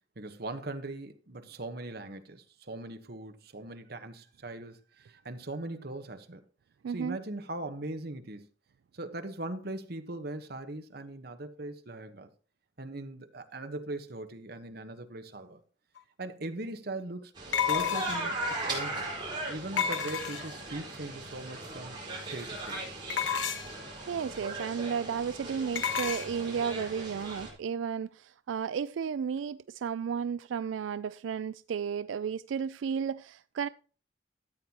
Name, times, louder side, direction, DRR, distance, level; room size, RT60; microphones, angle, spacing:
voice 1, 0.2-6.4 6.9-8.5 8.9-12.3 12.8-15.6 16.2-17.3 17.7-19.1 19.5-22.8, right 2 dB, 55° right, 1.2 m, -40 dB
voice 2, 6.8-7.2 24.1-33.7, right 7 dB, 85° right, 0.3 m, -33 dB
sound 1, 16.0-16.1 17.5-18.4 19.8-20.7 23.1-23.8 25.8-26.3, left 8 dB, 90° left, 1.2 m, -30 dB
sound 2, 17.4-27.5, right 2 dB, 25° right, 5.0 m, -38 dB
13.5 x 8.8 x 2.9 m
head